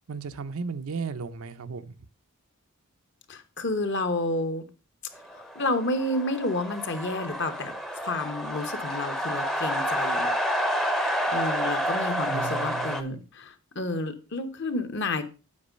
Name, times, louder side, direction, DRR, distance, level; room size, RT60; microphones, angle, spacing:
voice 1, 0.1-1.9 12.3-13.2, right 5 dB, 75° right, 0.6 m, -35 dB
voice 2, 3.3-4.6 5.3-10.5 11.3-15.2, left 2 dB, 55° left, 1.0 m, -30 dB
sound 1, 5.3-13.0, equal, ahead, 0.6 m, -29 dB
8.6 x 4.6 x 5.1 m
head